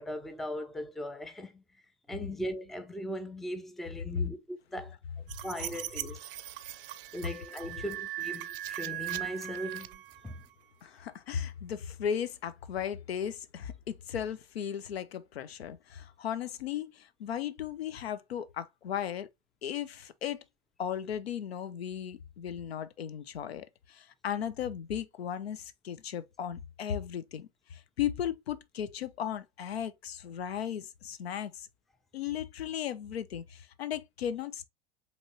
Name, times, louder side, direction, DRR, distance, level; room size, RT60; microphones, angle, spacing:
voice 1, 0.0-1.6 2.1-5.0 5.4-6.2 7.1-10.3, equal, ahead, 0.4 m, -39 dB
sound 1, 5.3-10.5, right 15 dB, 65° right, 0.5 m, -39 dB
voice 2, 10.8-19.3 19.6-20.4 20.8-31.7 32.1-34.7, left 9 dB, 80° left, 0.6 m, -36 dB
5.2 x 3.1 x 2.7 m
hypercardioid pair, 90°, 31 cm